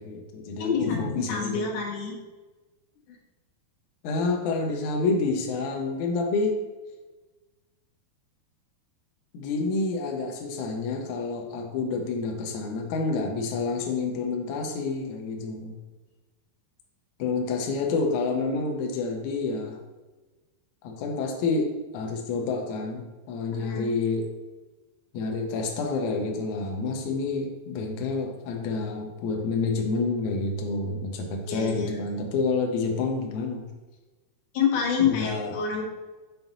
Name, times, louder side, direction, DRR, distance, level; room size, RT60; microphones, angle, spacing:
voice 1, 0.0-1.7 4.0-6.6 9.3-15.8 17.2-19.8 20.8-24.3 25.1-33.7 35.0-35.6, left 3 dB, 80° left, 2 dB, 1.7 m, -28 dB
voice 2, 0.5-2.1 3.1-3.2 23.6-23.9 31.5-32.0 34.5-35.8, left 6 dB, 65° left, -1 dB, 2.4 m, -27 dB
5.8 x 5.7 x 4.0 m, 1.2 s
omnidirectional pair, 4.4 m